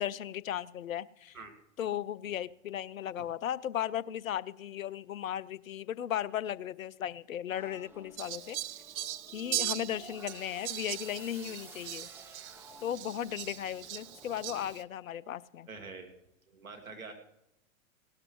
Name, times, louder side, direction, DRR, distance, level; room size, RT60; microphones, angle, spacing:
voice 1, 0.0-1.4 1.8-8.6 9.3-12.1 12.8-15.7, left 10 dB, 75° left, 19 dB, 0.6 m, -36 dB
sound 1, 7.5-14.8, right 1 dB, 5° right, 1.1 m, -53 dB
Fowl, 8.2-14.8, right 13 dB, 55° right, 0.6 m, -40 dB
voice 2, 15.7-16.1 16.5-17.1, right 4 dB, 85° right, 4 dB, 2.2 m, -46 dB
17.5 x 12.5 x 3.1 m, 0.81 s
figure-of-eight pair, 105°, 41 cm